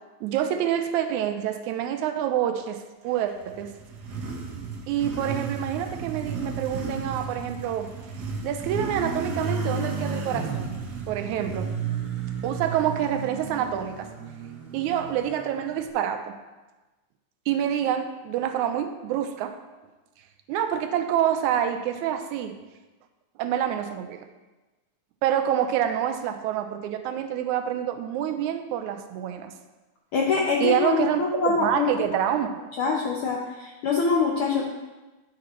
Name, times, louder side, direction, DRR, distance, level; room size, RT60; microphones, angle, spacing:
voice 1, 0.2-3.7 4.9-7.9 8.4-10.8 11.1-11.7 12.4-14.1 14.7-16.3 17.5-19.6 20.5-22.6 23.4-24.3 25.2-29.5 30.6-32.5, right 10 dB, 85° right, 8 dB, 2.0 m, -27 dB
Motorcycle, 3.2-15.9, right 5 dB, 65° right, 1.0 m, -33 dB
voice 2, 30.1-32.0 32.8-34.6, left 4 dB, 75° left, -2 dB, 1.2 m, -24 dB
10.0 x 7.6 x 3.1 m, 1.2 s
omnidirectional pair, 3.4 m